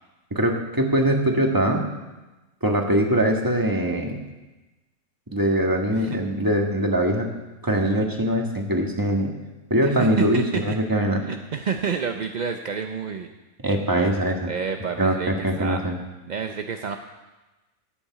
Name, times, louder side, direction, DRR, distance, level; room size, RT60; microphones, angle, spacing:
voice 1, 0.3-1.8 2.6-4.2 5.3-7.3 7.6-9.3 9.7-11.2 13.6-14.5 15.0-16.0, right 1 dB, 15° right, 2 dB, 1.6 m, -22 dB
voice 2, 5.9-6.2 9.8-10.8 11.2-13.3 14.5-15.8 16.3-17.0, right 6 dB, 50° right, 5 dB, 0.5 m, -29 dB
12.0 x 8.6 x 8.3 m, 1.1 s
omnidirectional pair, 1.5 m